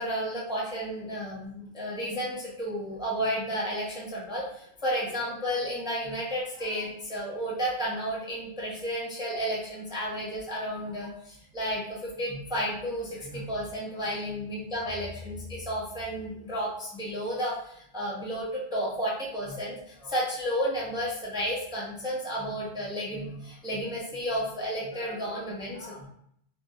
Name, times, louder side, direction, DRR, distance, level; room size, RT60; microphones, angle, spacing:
voice 1, 0.0-26.1, equal, 5° right, -6 dB, 0.6 m, -32 dB
2.6 x 2.4 x 3.6 m, 0.70 s
omnidirectional pair, 1.1 m